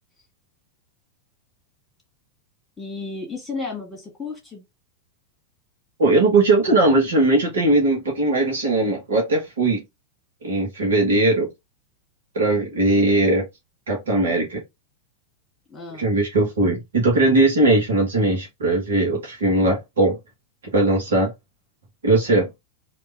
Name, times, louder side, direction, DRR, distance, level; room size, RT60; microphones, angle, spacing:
voice 1, 2.8-4.6 15.7-16.1, left 4 dB, 10° left, 1.9 m, -33 dB
voice 2, 6.0-9.8 10.4-11.5 12.3-13.5 13.9-14.6 16.0-20.2 20.7-21.3 22.0-22.5, right 2 dB, 65° right, 1.3 m, -19 dB
3.3 x 2.9 x 3.4 m
figure-of-eight pair, 90°, 0 cm